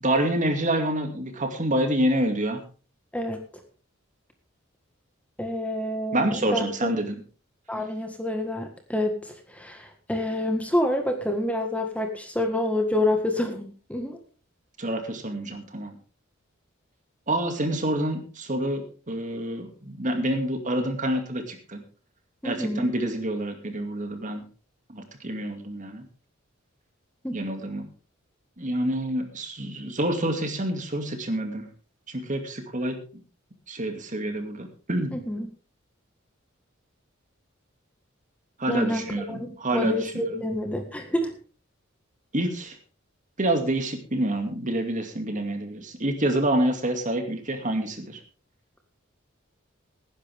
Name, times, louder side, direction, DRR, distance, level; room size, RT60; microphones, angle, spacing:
voice 1, 0.0-2.6 6.1-7.2 14.8-15.9 17.3-21.8 22.4-24.4 24.9-26.0 27.3-27.9 28.6-31.6 32.1-33.0 33.7-35.1 38.6-40.4 42.3-42.8 43.4-48.2, right 1 dB, 40° right, 5 dB, 2.4 m, -27 dB
voice 2, 5.4-6.9 7.7-9.2 9.5-14.2 22.4-22.9 27.2-27.5 35.1-35.5 38.7-41.3, left 1 dB, 5° left, 4 dB, 1.7 m, -28 dB
18.0 x 10.5 x 3.6 m, 0.37 s
head